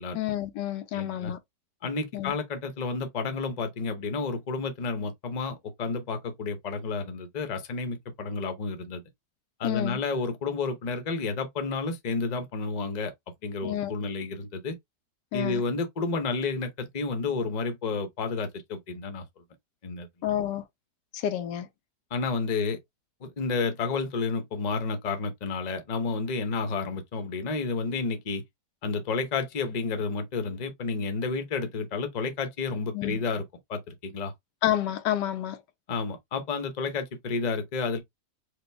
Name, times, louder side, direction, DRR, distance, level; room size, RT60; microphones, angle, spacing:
voice 1, 0.1-1.4 2.1-2.3 9.6-10.0 13.6-13.9 15.3-15.6 20.2-20.6 21.1-21.7 32.9-33.2 34.6-35.6, left 12 dB, 85° left, 1.3 m, -29 dB
voice 2, 0.9-1.3 1.8-9.0 9.6-13.1 13.4-14.8 15.3-19.2 19.8-20.1 22.1-22.8 23.2-28.4 28.8-33.4 33.7-34.3 35.9-38.0, left 4 dB, 35° left, 0.7 m, -31 dB
5.0 x 2.2 x 3.3 m
omnidirectional pair, 1.8 m